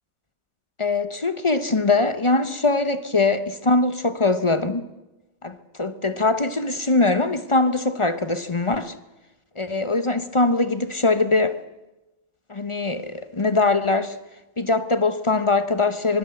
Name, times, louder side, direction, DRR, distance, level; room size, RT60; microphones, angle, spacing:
voice 1, 0.8-4.9 5.4-8.9 9.6-11.6 12.5-14.2 14.6-16.2, left 3 dB, 35° left, 0.5 m, -22 dB
24.5 x 20.5 x 7.8 m
omnidirectional pair, 2.1 m